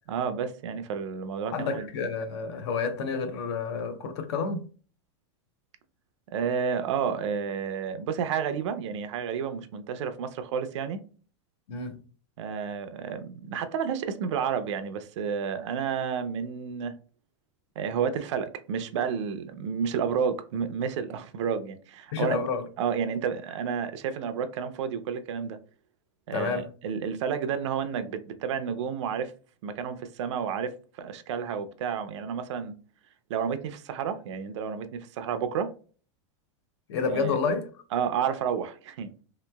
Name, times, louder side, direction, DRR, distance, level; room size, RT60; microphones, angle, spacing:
voice 1, 0.1-1.9 6.3-11.0 12.4-16.9 17.8-22.4 22.8-25.6 26.3-29.3 29.6-32.7 33.3-35.7 37.1-37.4 37.9-39.2, right 7 dB, 70° right, 0.5 m, -31 dB
voice 2, 1.5-4.7 11.7-12.0 22.1-22.7 26.3-26.6 36.9-37.7, left 5 dB, 60° left, 0.6 m, -29 dB
3.2 x 2.9 x 2.2 m
supercardioid pair, 165°, 16 cm